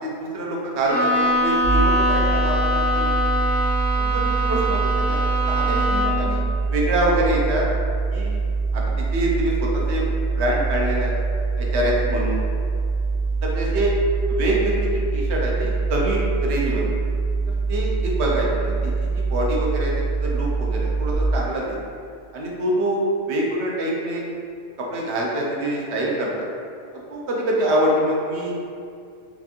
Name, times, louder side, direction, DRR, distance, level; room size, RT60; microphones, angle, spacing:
voice 1, 0.0-3.1 4.0-6.4 6.7-7.7 8.1-8.4 8.7-10.1 10.4-11.1 11.6-12.4 13.4-13.9 14.3-16.8 17.5-19.9 20.2-21.7 22.3-23.0 23.3-24.2 24.9-26.5 26.9-28.6, right 1 dB, 70° right, -3 dB, 1.0 m, -25 dB
Bowed string instrument, 0.8-6.4, equal, 50° left, 0.6 m, -23 dB
sound 1, 1.6-21.1, right 4 dB, 45° right, 0.6 m, -24 dB
4.3 x 2.4 x 2.8 m, 2.4 s
omnidirectional pair, 1.2 m